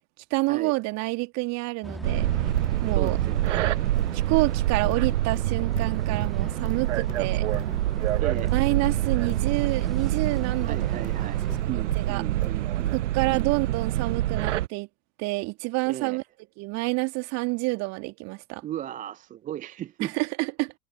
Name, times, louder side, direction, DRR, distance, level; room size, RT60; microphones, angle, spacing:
voice 1, 0.3-2.3 2.8-3.2 4.1-7.5 8.5-11.7 11.9-12.2 12.9-14.9 15.2-16.2 16.6-18.6 20.0-20.7, right 25 dB, 40° right, 2.5 m, -28 dB
sound 1, 1.8-11.6, equal, ahead, 1.7 m, -42 dB
sound 2, 2.0-14.7, right 14 dB, 60° right, 0.7 m, -26 dB
Livestock farm animals working animals, 2.6-13.4, left 26 dB, 45° left, 4.6 m, -44 dB
voice 2, 2.9-3.7 8.2-8.5 10.6-13.0 13.3-13.5 15.9-16.2 18.6-20.1, right 12 dB, 20° right, 0.7 m, -36 dB
figure-of-eight pair, 90°, 42 cm